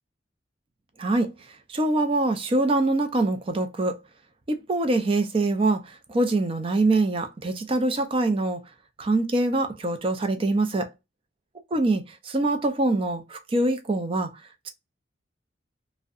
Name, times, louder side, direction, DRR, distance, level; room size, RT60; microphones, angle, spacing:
voice 1, 1.0-1.3 1.7-4.0 4.5-8.6 9.0-10.9 11.7-14.3, right 2 dB, 30° right, 0.4 m, -24 dB
2.6 x 2.1 x 2.3 m
head